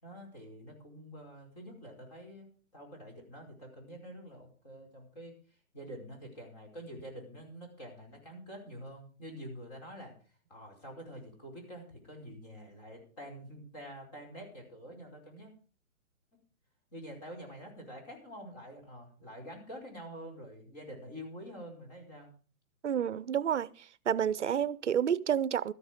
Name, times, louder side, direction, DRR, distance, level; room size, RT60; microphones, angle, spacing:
voice 1, 0.0-2.5 2.7-15.5 16.3-16.4 16.9-22.3, equal, 30° left, 5.0 m, -47 dB
voice 2, 22.8-23.7 24.1-25.7, right 9 dB, 55° right, 0.6 m, -29 dB
13.0 x 11.0 x 5.1 m
hypercardioid pair, 175°, 42 cm